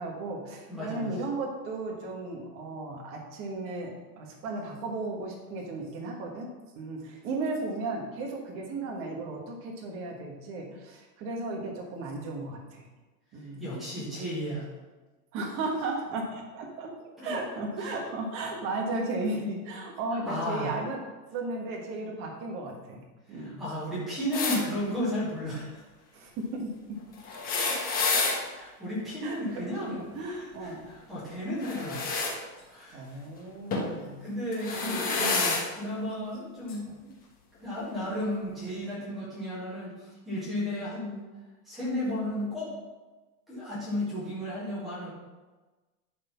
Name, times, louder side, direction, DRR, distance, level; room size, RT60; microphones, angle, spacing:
voice 1, 0.0-6.5 6.7-12.8 13.3-13.7 15.3-16.9 17.2-21.0 21.3-23.0 23.3-23.6 26.1-27.0 28.1-28.2 29.2-30.8 32.9-34.2 34.7-35.6 36.9-37.0, right 2 dB, 25° right, 0 dB, 1.4 m, -35 dB
voice 2, 0.7-1.1 13.6-14.7 17.2-17.3 17.8-18.0 20.2-20.8 23.3-25.8 27.5-28.2 28.5-32.0 32.7-33.2 34.2-35.1 35.7-36.8 37.6-41.2 41.7-42.7 43.5-45.1, left 1 dB, ahead, -11 dB, 0.3 m, -34 dB
sound 1, 24.3-24.6 27.2-28.4 31.6-32.3 33.7-33.9 34.5-35.6 36.7-36.8 38.0-38.1, left 4 dB, 20° left, 1.2 m, -28 dB
11.0 x 4.2 x 5.7 m, 1.2 s
supercardioid pair, 170°, 46 cm